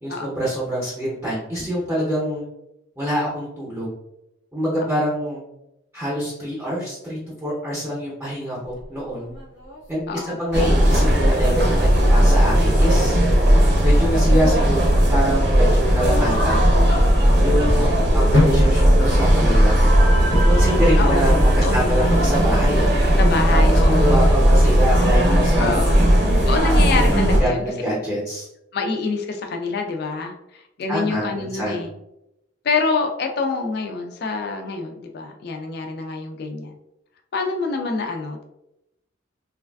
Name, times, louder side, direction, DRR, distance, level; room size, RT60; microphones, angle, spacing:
voice 1, 0.0-2.4 3.0-3.9 4.5-5.4 5.9-9.3 9.9-13.2 13.8-16.6 17.4-19.9 20.4-22.9 23.5-23.6 23.8-26.1 26.9-28.5 30.9-31.8, equal, 10° right, -8 dB, 0.6 m, -25 dB
sound 1, 8.6-20.8, left 2 dB, 80° left, 0.8 m, -30 dB
voice 2, 10.1-10.4 18.0-18.2 21.0-22.3 23.2-24.2 25.6-26.0 26.5-27.6 28.7-31.9 32.6-36.7 37.3-38.4, left 4 dB, 50° left, 4 dB, 0.3 m, -26 dB
sound 2, 10.5-27.4, equal, 55° right, 0.6 m, -16 dB
3.1 x 2.3 x 2.2 m, 0.86 s
head